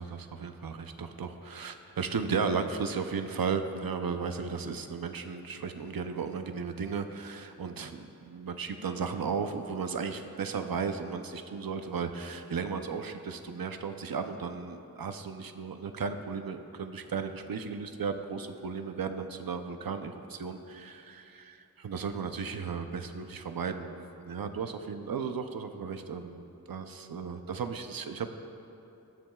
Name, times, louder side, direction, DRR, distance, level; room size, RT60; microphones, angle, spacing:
voice 1, 0.0-21.4 21.8-28.4, right 5 dB, 85° right, 7 dB, 0.7 m, -35 dB
19.0 x 13.5 x 2.3 m, 2.9 s
wide cardioid pair, 80°, 34 cm